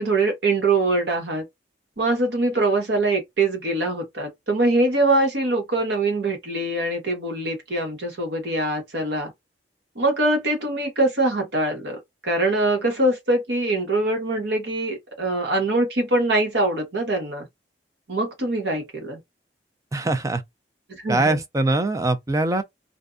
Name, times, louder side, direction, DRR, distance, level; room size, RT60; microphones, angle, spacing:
voice 1, 0.0-1.4 2.0-9.3 9.9-17.5 18.1-19.2 20.9-21.4, right 2 dB, 75° right, 1.1 m, -23 dB
voice 2, 19.9-20.4 21.1-22.6, right 2 dB, 20° right, 0.4 m, -22 dB
2.5 x 2.1 x 2.4 m
head